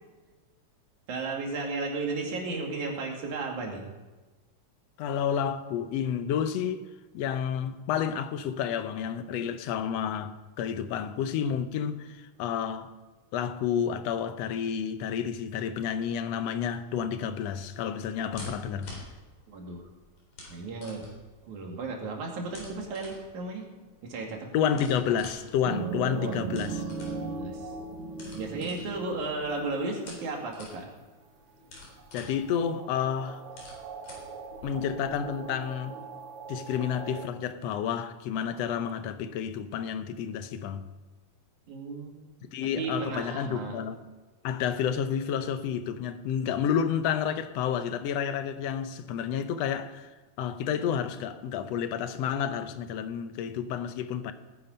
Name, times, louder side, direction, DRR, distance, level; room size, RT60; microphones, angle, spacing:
voice 1, 1.1-3.8 19.5-19.8 20.5-21.0 21.5-23.7 24.0-24.5 26.1-26.4 27.2-27.7 28.4-30.9 41.7-42.3 42.8-43.8, right 3 dB, 90° right, 3.7 m, -34 dB
voice 2, 5.0-6.9 7.1-12.9 13.3-18.9 24.5-26.8 32.1-33.4 34.6-36.0 36.5-40.8 42.4-44.0 44.4-54.3, left 8 dB, 70° left, 1.8 m, -30 dB
sound 1, 16.6-35.2, left 2 dB, 90° left, 5.2 m, -50 dB
sound 2, 25.6-30.0 32.0-32.1 32.5-37.3, right 5 dB, 75° right, 2.4 m, -38 dB
19.0 x 9.7 x 5.4 m
omnidirectional pair, 3.3 m